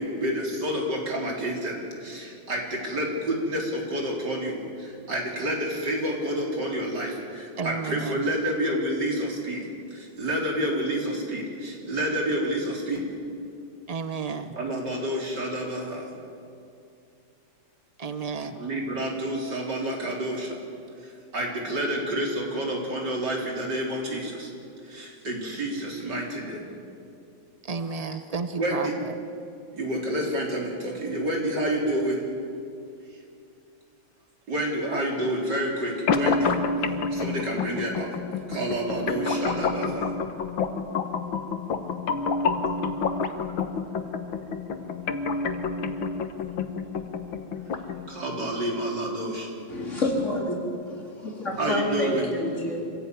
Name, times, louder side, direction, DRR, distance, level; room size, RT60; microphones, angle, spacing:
voice 1, 0.0-13.1 14.5-16.1 18.6-20.6 21.0-24.5 24.8-26.6 28.6-28.9 29.7-32.3 34.5-36.6 37.1-38.1 38.5-40.1 48.1-49.5 51.6-52.3, right 1 dB, 55° right, -1 dB, 4.5 m, -29 dB
voice 2, 7.6-8.2 13.9-14.6 18.0-18.6 27.6-29.1, right 5 dB, 90° right, 9 dB, 0.3 m, -32 dB
sound 1, 36.1-48.1, left 4 dB, 75° left, 2.0 m, -28 dB
voice 3, 49.7-50.6 50.9-52.8, left 1 dB, 35° left, -1 dB, 4.0 m, -28 dB
26.0 x 15.5 x 9.4 m, 2.4 s
omnidirectional pair, 2.2 m